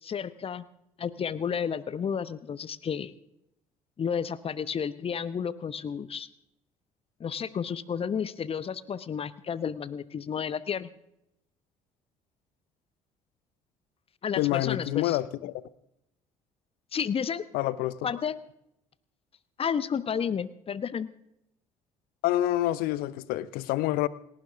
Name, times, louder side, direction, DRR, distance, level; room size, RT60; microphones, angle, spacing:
voice 1, 0.0-0.6 1.0-3.1 4.0-6.3 7.2-10.9 14.2-15.2 16.9-17.4 18.0-18.3 19.6-21.1, left 7 dB, 30° left, 1.0 m, -31 dB
voice 2, 14.4-15.5 17.5-18.0 22.2-24.1, left 15 dB, 55° left, 0.8 m, -27 dB
28.5 x 12.0 x 3.5 m
figure-of-eight pair, 55°, 18 cm